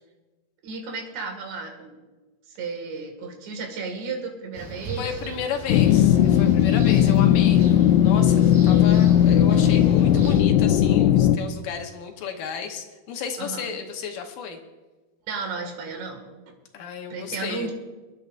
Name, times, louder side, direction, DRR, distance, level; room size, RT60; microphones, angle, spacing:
voice 1, 0.6-1.9 2.5-5.1 13.4-13.7 15.3-16.2 17.1-17.7, right 4 dB, 80° right, 3 dB, 4.2 m, -33 dB
sound 1, 4.5-10.4, right 3 dB, 65° right, 6.0 m, -39 dB
voice 2, 5.0-14.6 16.7-17.7, left 6 dB, 70° left, 3 dB, 2.3 m, -33 dB
sound 2, 5.7-11.4, left 10 dB, 90° left, 2.8 m, -17 dB
27.5 x 10.0 x 2.5 m, 1.2 s
omnidirectional pair, 5.0 m